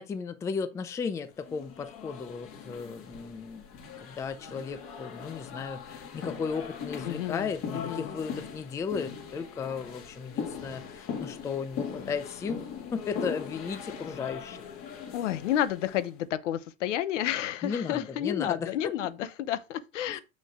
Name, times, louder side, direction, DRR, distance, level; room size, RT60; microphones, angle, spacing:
voice 1, 0.0-3.6 4.0-12.6 12.9-14.6 17.6-18.9 20.1-20.2, left 5 dB, 10° left, 0.4 m, -35 dB
sound 1, 1.4-16.1, left 6 dB, 35° left, 2.2 m, -40 dB
voice 2, 7.0-8.1 15.1-20.2, left 11 dB, 75° left, 0.9 m, -31 dB
6.8 x 6.2 x 3.7 m
supercardioid pair, 130°, 37 cm